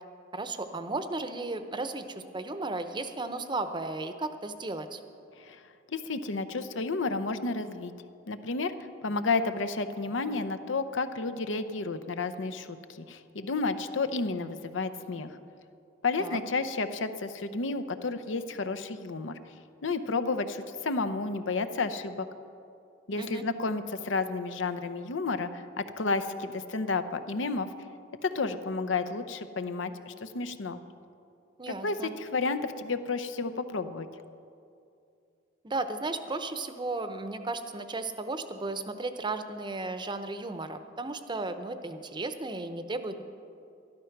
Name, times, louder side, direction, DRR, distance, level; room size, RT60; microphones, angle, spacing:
voice 1, 0.3-5.0 16.2-16.4 23.2-23.4 31.6-32.1 35.6-43.2, right 2 dB, 25° right, 9 dB, 0.7 m, -35 dB
voice 2, 5.9-7.9 8.3-15.3 16.0-19.4 19.8-22.3 23.1-27.7 28.2-30.8 31.7-34.1, left 3 dB, 80° left, 11 dB, 0.7 m, -31 dB
12.5 x 12.0 x 5.9 m, 2.5 s
head